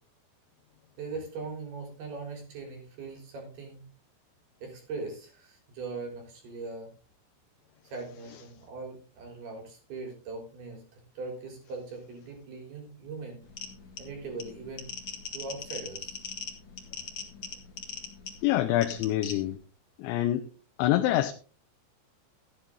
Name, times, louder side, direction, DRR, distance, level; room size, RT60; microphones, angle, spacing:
voice 1, 1.0-3.8 4.6-6.9 7.8-13.4 14.0-14.9 15.3-16.2, right 3 dB, 60° right, 5.8 m, -40 dB
sound 1, 13.4-19.6, left 5 dB, 45° left, 1.5 m, -41 dB
voice 2, 18.4-19.6 20.0-20.5 20.8-21.3, left 13 dB, 90° left, 3.1 m, -25 dB
13.5 x 10.0 x 3.8 m
omnidirectional pair, 5.1 m